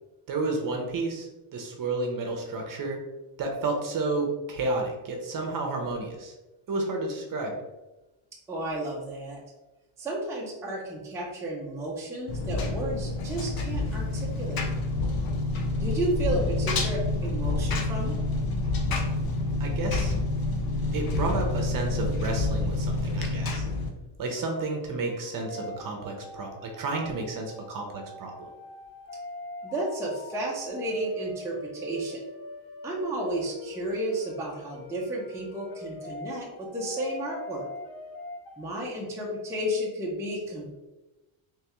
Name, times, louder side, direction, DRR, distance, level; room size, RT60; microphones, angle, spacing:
voice 1, 0.3-3.0 3.4-6.3 6.7-7.6 19.6-20.1 20.9-23.6 24.2-28.5, right 3 dB, 40° right, 2 dB, 0.7 m, -31 dB
voice 2, 8.5-9.4 10.0-14.6 15.8-18.2 29.6-32.2 32.8-37.6 38.6-40.7, right 1 dB, 5° right, -4 dB, 0.5 m, -32 dB
Engine, 12.3-23.9, left 2 dB, 45° left, 0.6 m, -28 dB
sound 1, 24.3-38.7, left 2 dB, 80° left, 0.8 m, -43 dB
3.4 x 3.2 x 3.0 m, 1.1 s
cardioid pair, 150°, 49 cm